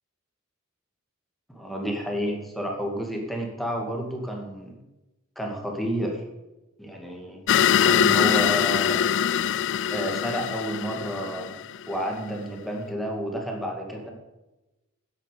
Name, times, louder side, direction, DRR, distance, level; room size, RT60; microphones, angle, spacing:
voice 1, 1.5-4.8 5.4-6.2 6.8-7.5 7.8-9.0 9.9-14.1, equal, ahead, 0 dB, 2.2 m, -30 dB
sound 1, 7.5-12.1, left 9 dB, 60° left, 0.4 m, -23 dB
10.5 x 8.4 x 6.8 m, 1.0 s
head